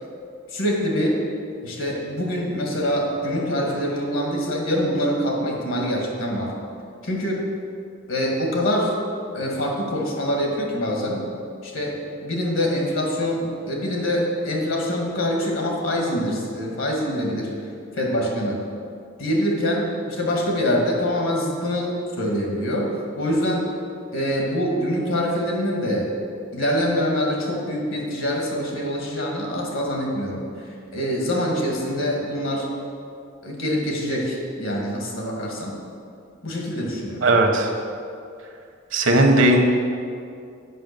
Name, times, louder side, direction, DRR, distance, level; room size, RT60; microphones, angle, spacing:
voice 1, 0.5-1.2 1.6-6.6 7.0-7.5 8.1-8.9 9.3-11.3 11.6-17.5 18.0-18.6 19.2-23.7 24.1-26.2 26.5-30.6 30.9-32.7 33.4-35.8 36.4-37.2, equal, 80° left, 0 dB, 1.9 m, -25 dB
voice 2, 37.2-37.7 38.9-39.6, right 1 dB, 65° right, 3 dB, 1.1 m, -16 dB
7.8 x 6.0 x 6.8 m, 2.4 s
head